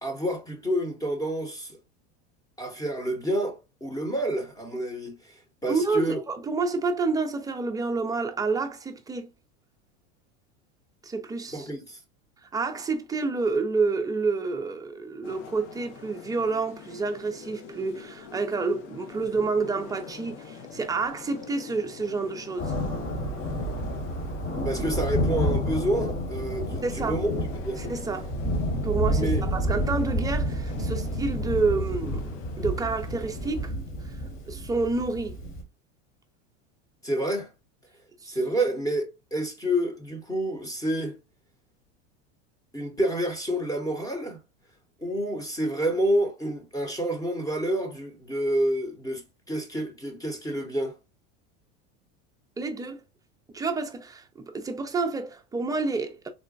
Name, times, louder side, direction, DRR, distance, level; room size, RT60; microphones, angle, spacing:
voice 1, 0.0-1.8 2.6-5.1 5.6-6.2 11.5-12.0 24.6-27.3 27.6-27.8 29.1-29.4 37.0-37.5 38.3-39.0 39.3-41.1 42.7-44.4 45.0-49.2 49.5-50.9, right 1 dB, 10° left, 0.8 m, -28 dB
voice 2, 5.7-9.3 11.0-11.7 12.5-22.7 26.8-27.2 27.8-28.3 28.8-32.3 32.6-33.7 34.0-34.2 34.5-35.4 38.2-38.4 52.6-53.0 53.5-56.3, right 4 dB, 10° right, 0.4 m, -29 dB
sound 1, 15.2-33.7, left 6 dB, 80° left, 0.9 m, -46 dB
Thunder, 22.6-35.6, equal, 35° left, 1.3 m, -29 dB
3.8 x 2.1 x 2.4 m
supercardioid pair, 125°, 36 cm